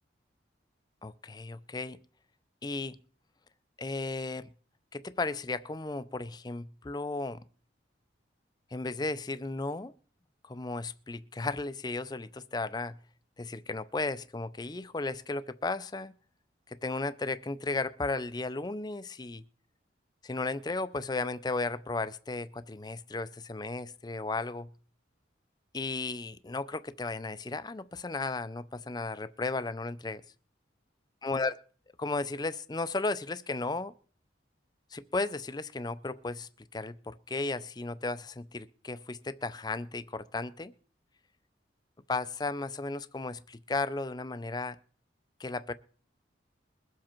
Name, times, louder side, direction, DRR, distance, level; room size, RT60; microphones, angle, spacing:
voice 1, 1.0-2.0 2.6-3.0 3.8-4.5 4.9-7.4 8.7-9.9 10.4-13.0 13.4-16.1 16.7-19.4 20.2-24.7 25.7-30.2 31.2-31.6 32.0-33.9 34.9-40.7 42.1-44.8 45.4-45.7, left 3 dB, 20° left, 13 dB, 0.5 m, -35 dB
22.0 x 7.5 x 4.4 m, 0.43 s
head